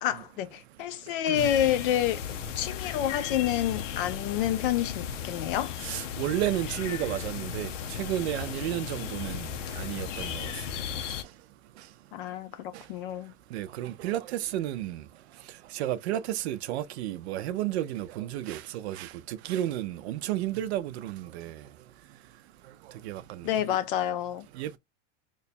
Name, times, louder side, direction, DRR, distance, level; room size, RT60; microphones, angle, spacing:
voice 1, 0.0-2.2 2.6-5.8 12.1-13.3 23.4-24.5, left 11 dB, 45° left, 0.5 m, -28 dB
sound 1, 1.4-11.2, left 8 dB, 85° left, 0.7 m, -36 dB
voice 2, 5.8-10.5 12.7-12.8 13.5-15.0 15.7-21.6 23.0-23.5 24.6-24.8, right 13 dB, 65° right, 0.5 m, -32 dB
3.0 x 2.3 x 4.0 m
supercardioid pair, 155°, 36 cm